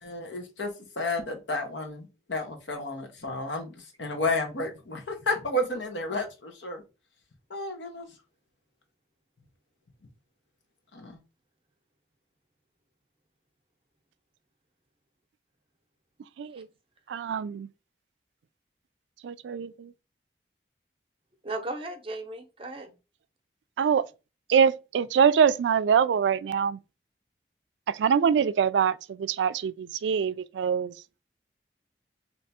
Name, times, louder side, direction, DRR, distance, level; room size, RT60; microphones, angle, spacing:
voice 1, 0.0-6.8 7.5-8.1 10.9-11.2, left 2 dB, 90° left, 1.0 m, -32 dB
voice 2, 17.1-17.7 19.2-19.9 23.8-24.0 24.5-26.8 27.9-30.9, right 7 dB, 85° right, 0.3 m, -24 dB
voice 3, 21.4-22.9, right 2 dB, 30° right, 0.7 m, -36 dB
3.4 x 2.8 x 4.1 m
head